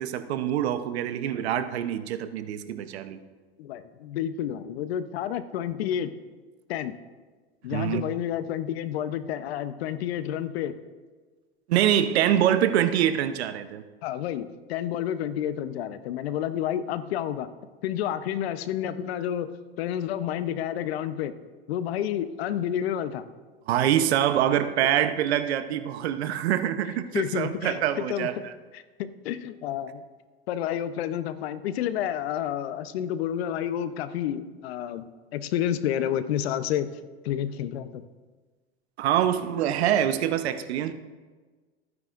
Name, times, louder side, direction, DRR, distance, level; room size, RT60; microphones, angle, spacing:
voice 1, 0.0-3.2 7.7-8.0 11.7-13.8 23.7-28.5 39.0-40.9, right 10 dB, 80° right, 11 dB, 0.9 m, -25 dB
voice 2, 3.6-6.2 6.7-7.0 7.6-10.8 14.0-17.5 17.8-21.4 21.7-23.2 27.1-28.3 28.7-30.0 30.5-35.1 35.3-37.0 37.2-38.0, left 10 dB, 70° left, 12 dB, 0.9 m, -30 dB
28.0 x 9.7 x 2.6 m, 1.4 s
hypercardioid pair, 120°, 32 cm